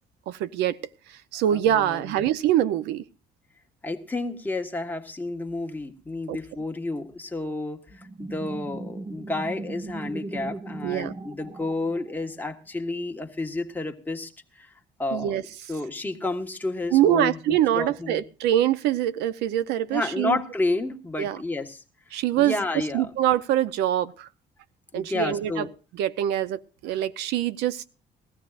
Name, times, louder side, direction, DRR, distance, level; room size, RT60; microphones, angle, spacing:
voice 1, 0.3-0.8 1.1-3.0 6.3-6.4 10.8-11.1 15.1-15.4 16.9-20.4 21.2-21.4 22.1-22.6 22.9-24.3 24.9-25.7 25.9-27.8, right 12 dB, 90° right, 0.6 m, -24 dB
voice 2, 1.5-2.1 3.8-14.7 15.0-15.4 15.7-18.2 19.9-21.8 22.4-23.1 24.9-25.7, left 2 dB, 10° left, 1.5 m, -31 dB
sound 1, 7.9-12.4, right 2 dB, 20° right, 0.8 m, -37 dB
20.5 x 14.5 x 2.4 m
cardioid pair, 110°, 17 cm